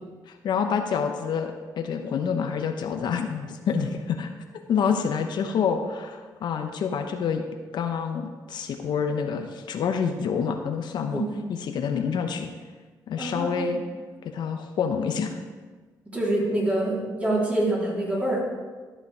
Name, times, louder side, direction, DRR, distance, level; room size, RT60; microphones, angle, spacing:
voice 1, 0.3-4.3 4.7-7.4 7.7-11.2 11.7-12.5 13.1-13.8 14.2-15.4, left 6 dB, 70° left, 5 dB, 0.9 m, -27 dB
voice 2, 13.1-13.8 16.0-18.4, right 1 dB, 15° right, -4 dB, 3.3 m, -26 dB
13.0 x 5.7 x 4.8 m, 1.4 s
cardioid pair, 85°, 8 cm